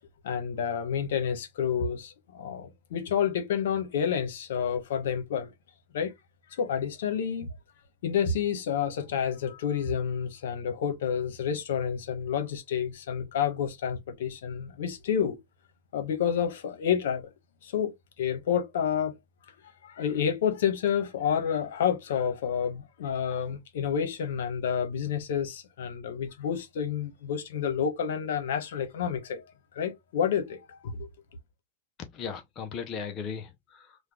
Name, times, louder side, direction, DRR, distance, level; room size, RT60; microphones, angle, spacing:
voice 1, 0.2-5.5 5.9-6.1 6.5-7.6 8.0-15.4 15.9-17.3 17.6-19.1 19.8-29.4 29.7-31.1, left 8 dB, 75° left, 1.0 m, -29 dB
voice 2, 32.0-34.1, left 6 dB, 30° left, 0.5 m, -37 dB
3.2 x 2.2 x 3.5 m
hypercardioid pair, 135°, 0 cm